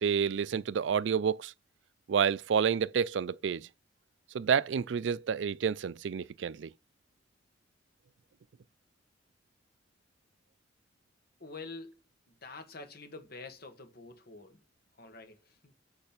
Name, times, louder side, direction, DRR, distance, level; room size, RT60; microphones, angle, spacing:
voice 1, 0.0-1.5 2.1-3.7 4.3-6.7, right 7 dB, 65° right, 0.4 m, -29 dB
voice 2, 11.4-12.0 12.3-14.6 15.0-15.7, left 3 dB, 55° left, 1.5 m, -47 dB
8.7 x 3.3 x 5.9 m
head